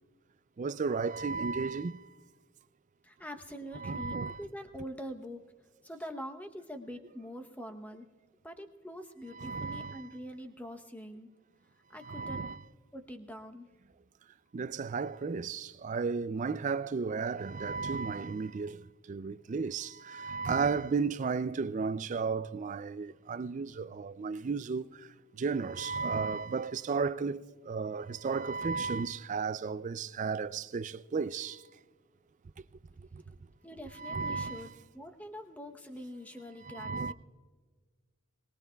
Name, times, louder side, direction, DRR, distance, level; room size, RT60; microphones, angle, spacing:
voice 1, 0.6-2.0 3.7-4.4 9.3-10.1 12.0-12.6 14.5-25.0 25.4-31.6 33.1-33.2 34.0-34.7 36.6-37.1, right 5 dB, 35° right, 0.3 m, -34 dB
voice 2, 3.0-5.5 5.8-8.1 8.4-11.3 11.9-12.5 12.9-13.7 33.6-37.1, equal, 5° left, 0.8 m, -44 dB
22.0 x 19.0 x 2.3 m
head